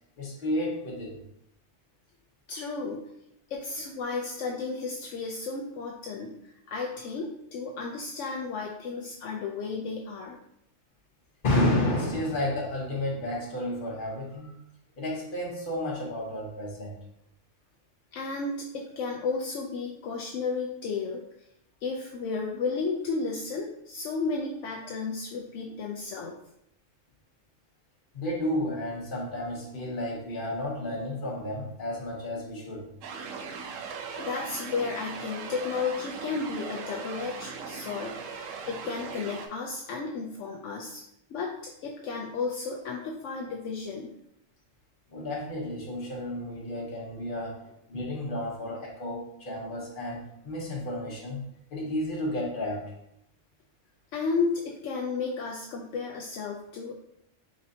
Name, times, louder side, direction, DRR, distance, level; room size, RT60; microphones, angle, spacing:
voice 1, 0.2-1.2 11.4-14.5 15.0-16.9 28.1-32.9 45.1-51.4 51.7-52.9, left 1 dB, 45° left, -2 dB, 1.2 m, -31 dB
voice 2, 2.5-3.1 3.5-10.4 18.1-21.2 21.8-26.3 34.2-38.2 38.6-41.0 41.3-44.1 54.1-56.9, left 4 dB, 75° left, -1 dB, 0.9 m, -33 dB
sound 1, 33.0-39.5, right 5 dB, 85° right, 1.0 m, -39 dB
4.2 x 4.0 x 2.7 m, 0.76 s
omnidirectional pair, 1.3 m